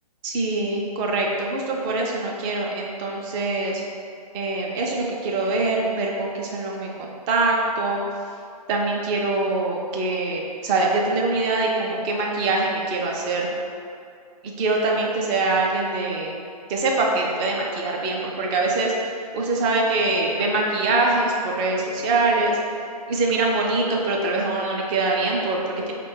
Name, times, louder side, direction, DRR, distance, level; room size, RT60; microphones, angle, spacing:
voice 1, 0.2-3.8 4.3-8.0 8.7-13.5 14.4-16.4 16.7-22.6 23.1-25.9, right 2 dB, 15° right, -1 dB, 0.4 m, -24 dB
4.2 x 2.2 x 4.5 m, 2.3 s
figure-of-eight pair, 130°, 20 cm